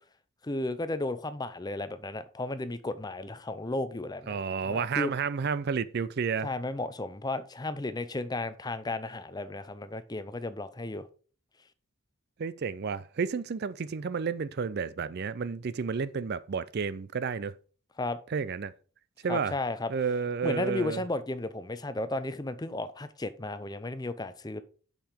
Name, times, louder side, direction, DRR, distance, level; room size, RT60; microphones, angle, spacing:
voice 1, 0.4-4.4 4.6-5.1 6.4-11.1 18.0-18.2 19.3-19.9 20.4-24.6, left 2 dB, 20° left, 0.5 m, -34 dB
voice 2, 4.3-6.5 12.4-17.6 18.3-18.7 19.2-19.5 19.9-21.0, right 5 dB, 45° right, 0.4 m, -31 dB
7.2 x 5.7 x 5.0 m
head